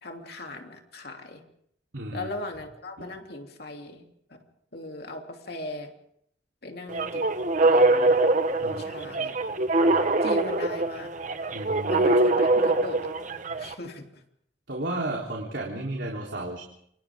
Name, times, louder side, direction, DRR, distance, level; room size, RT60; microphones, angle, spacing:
voice 1, 0.0-1.4 2.1-4.0 4.7-5.9 6.6-7.2 7.6-8.2 8.6-9.4 10.2-11.1 11.9-13.1 13.6-14.1, left 2 dB, 60° left, 3 dB, 3.0 m, -38 dB
voice 2, 1.9-2.3 3.0-3.1 8.6-9.1 9.7-10.1 11.5-12.0 14.7-16.6, right 1 dB, 75° right, -1 dB, 3.6 m, -34 dB
sound 1, 6.9-13.7, right 2 dB, 45° right, 1.2 m, -23 dB
28.5 x 25.5 x 3.7 m, 0.70 s
head